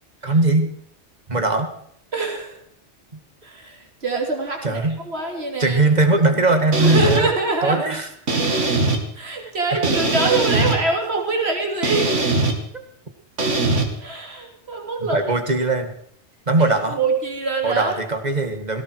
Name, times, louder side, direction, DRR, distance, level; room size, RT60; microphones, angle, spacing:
voice 1, 0.2-0.7 1.3-1.7 3.1-3.2 4.6-5.0 5.6-7.3 7.6-8.1 9.7-9.9 12.7-12.8 15.0-16.0 16.5-17.0 17.6-18.8, right 2 dB, 35° right, 7 dB, 2.0 m, -20 dB
voice 2, 2.1-2.5 3.4-5.8 6.8-7.8 8.4-8.6 9.1-12.1 14.0-15.2 16.6-18.0, right 3 dB, 60° right, 1 dB, 3.3 m, -24 dB
sound 1, 6.7-7.2 8.3-9.0 9.8-10.8 11.8-12.6 13.4-13.8, right 3 dB, 85° right, 2.7 m, -20 dB
18.5 x 16.5 x 4.7 m, 0.68 s
omnidirectional pair, 1.2 m